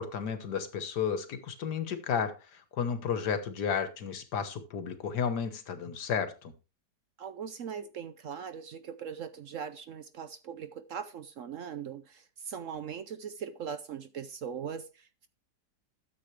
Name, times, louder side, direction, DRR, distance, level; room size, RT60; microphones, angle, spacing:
voice 1, 0.0-6.5, left 7 dB, 75° left, 9 dB, 1.8 m, -33 dB
voice 2, 7.2-15.3, right 7 dB, 60° right, 12 dB, 0.9 m, -40 dB
13.0 x 7.6 x 3.3 m, 0.31 s
omnidirectional pair, 1.8 m